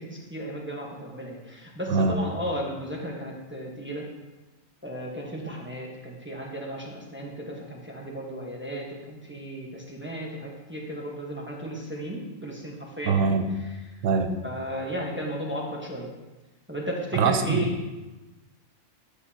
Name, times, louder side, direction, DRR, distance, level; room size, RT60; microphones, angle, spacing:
voice 1, 0.0-4.0 4.8-13.4 14.4-16.1 16.7-17.9, equal, 10° right, -3 dB, 1.0 m, -34 dB
voice 2, 1.9-2.2 13.0-13.5 14.0-14.4 17.1-17.9, right 5 dB, 70° right, 8 dB, 1.0 m, -23 dB
8.3 x 8.1 x 2.8 m, 1.1 s
omnidirectional pair, 1.4 m